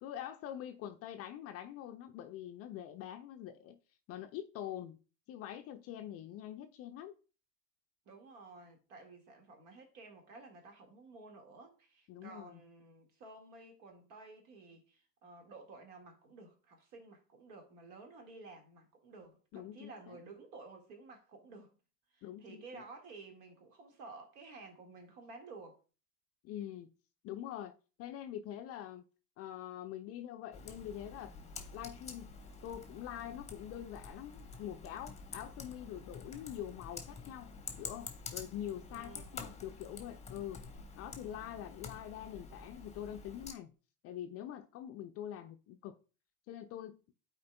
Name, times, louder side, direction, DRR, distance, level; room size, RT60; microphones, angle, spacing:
voice 1, 0.0-3.8 4.1-5.0 5.3-7.1 12.1-12.6 19.5-20.2 22.2-22.8 26.4-26.9 27.2-27.7 28.0-29.0 29.4-31.3 31.7-32.3 32.6-37.5 37.8-40.6 41.0-43.7 44.0-46.0 46.5-47.0, left 11 dB, 30° left, 0.4 m, -44 dB
voice 2, 8.1-21.8 22.1-25.8 38.9-39.5, right 3 dB, 60° right, 1.9 m, -53 dB
Computer keyboard, 30.5-43.5, left 4 dB, 15° left, 1.0 m, -48 dB
12.5 x 4.4 x 2.2 m
hypercardioid pair, 80°, 48 cm